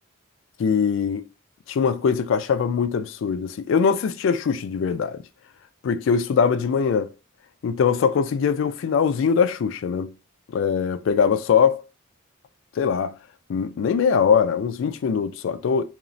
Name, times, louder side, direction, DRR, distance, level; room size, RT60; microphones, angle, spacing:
voice 1, 0.6-1.3 1.7-5.2 5.8-7.1 7.6-10.1 10.5-11.8 12.8-13.2 13.5-15.8, left 6 dB, 65° left, 0.3 m, -22 dB
3.0 x 2.4 x 2.5 m
head